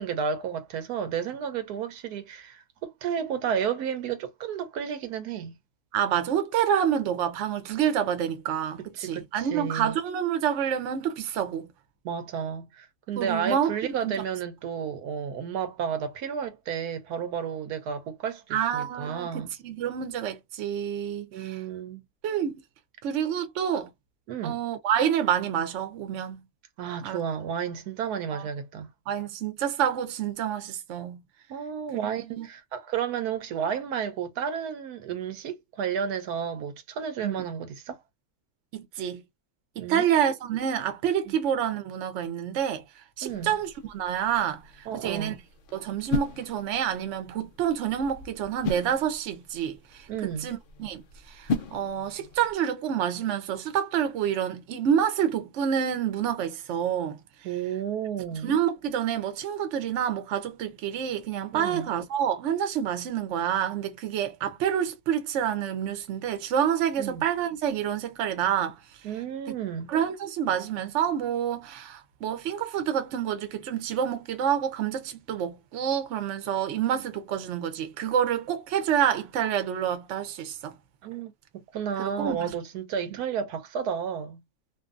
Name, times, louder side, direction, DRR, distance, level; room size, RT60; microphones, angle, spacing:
voice 1, 0.0-5.6 8.8-10.0 12.0-19.5 21.3-22.0 24.3-24.6 26.8-28.9 31.5-38.0 39.8-40.1 41.3-41.4 43.2-43.5 44.9-45.4 50.1-50.5 57.4-58.5 61.5-61.9 67.0-67.3 69.0-69.9 81.0-84.4, right 7 dB, 85° right, 1.2 m, -32 dB
voice 2, 5.9-11.7 13.2-14.2 18.5-21.6 22.2-22.6 23.0-23.9 24.4-26.4 27.0-27.2 28.3-28.5 29.1-31.2 32.2-32.5 37.2-37.4 38.7-39.2 39.8-45.3 45.7-57.2 58.4-68.8 69.9-80.7 82.2-82.5, right 9 dB, 60° right, 0.9 m, -28 dB
sound 1, 43.3-52.5, left 4 dB, 80° left, 0.4 m, -37 dB
2.6 x 2.6 x 2.4 m
omnidirectional pair, 1.6 m